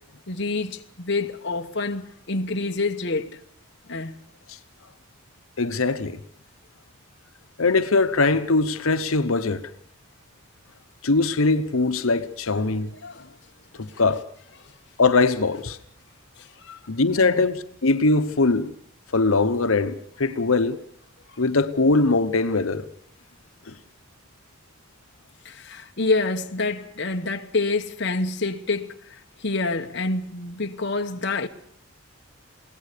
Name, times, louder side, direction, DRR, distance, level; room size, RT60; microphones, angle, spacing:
voice 1, 0.3-3.4 3.9-4.2 13.0-13.3 13.7-14.0 16.4-16.8 17.2-17.4 25.4-31.5, left 3 dB, 55° left, 1.0 m, -27 dB
voice 2, 5.6-6.2 7.6-9.6 11.0-12.9 13.7-14.3 15.0-15.8 16.9-18.7 19.1-20.8 21.4-22.9 23.7-23.8, left 3 dB, 80° left, 1.0 m, -21 dB
22.5 x 17.5 x 6.8 m
head